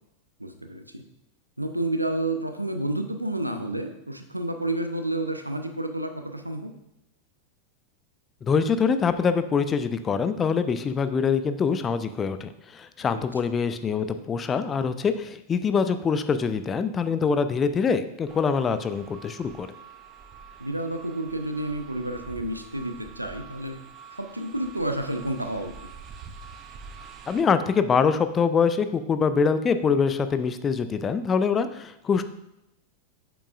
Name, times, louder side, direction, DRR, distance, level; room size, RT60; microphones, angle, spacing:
voice 1, 0.4-1.0 1.6-6.7 13.1-13.2 20.6-23.8 24.1-25.7, right 1 dB, 85° right, 6 dB, 0.6 m, -30 dB
voice 2, 8.5-19.7 27.3-32.2, left 5 dB, 20° left, 11 dB, 0.4 m, -24 dB
sound 1, 18.3-27.4, right 6 dB, 30° right, 0.6 m, -46 dB
8.2 x 6.0 x 2.4 m, 0.87 s
figure-of-eight pair, 90°, 0 cm